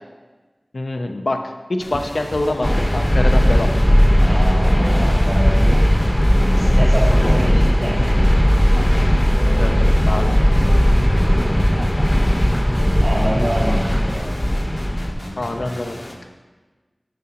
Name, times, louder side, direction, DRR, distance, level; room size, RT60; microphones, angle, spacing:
voice 1, 0.7-1.4 1.7-3.7 6.8-7.3 9.6-10.4 15.4-16.0, left 2 dB, 85° left, 4 dB, 0.5 m, -25 dB
sound 1, 1.8-16.1, left 1 dB, 60° left, 0.8 m, -35 dB
sound 2, 1.9-14.1, equal, 20° right, 0.4 m, -32 dB
sound 3, 2.6-15.1, equal, 20° left, 0.7 m, -16 dB
voice 2, 4.2-5.8 6.5-8.4 13.0-14.3, equal, 75° right, -6 dB, 1.0 m, -26 dB
7.4 x 5.2 x 2.9 m, 1.3 s
wide cardioid pair, 55°, 0 cm